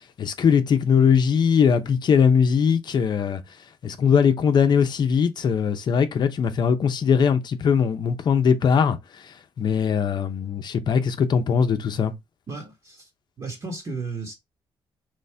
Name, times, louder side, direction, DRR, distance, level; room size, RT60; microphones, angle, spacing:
voice 1, 0.2-3.4 3.8-9.0 9.6-12.1, left 7 dB, 50° left, 0.7 m, -20 dB
voice 2, 12.5-13.1 13.4-14.3, right 3 dB, 40° right, 1.2 m, -34 dB
4.2 x 3.2 x 3.3 m
cardioid pair, 130°, 9 cm